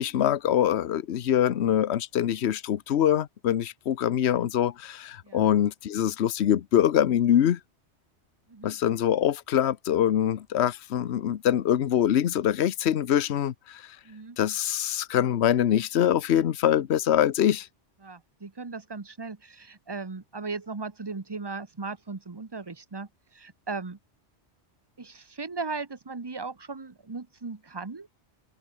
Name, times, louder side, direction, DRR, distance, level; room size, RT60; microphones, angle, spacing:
voice 1, 0.0-7.6 8.6-13.8 14.4-17.7, left 10 dB, 70° left, 1.1 m, -24 dB
voice 2, 14.0-14.4 18.0-24.0 25.0-28.1, right 4 dB, 20° right, 1.0 m, -37 dB
open air
omnidirectional pair, 1.2 m